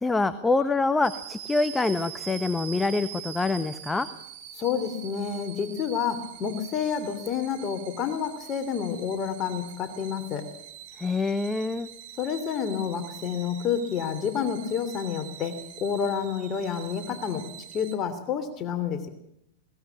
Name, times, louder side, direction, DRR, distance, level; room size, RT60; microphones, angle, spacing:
voice 1, 0.0-4.1 11.0-11.9, left 3 dB, 10° left, 12 dB, 1.1 m, -25 dB
sound 1, 1.0-17.9, right 10 dB, 55° right, 3.7 m, -44 dB
voice 2, 4.5-10.5 12.2-17.5 17.7-19.1, left 7 dB, 35° left, 8 dB, 3.0 m, -29 dB
21.0 x 19.5 x 7.1 m, 0.78 s
figure-of-eight pair, 95°, 0 cm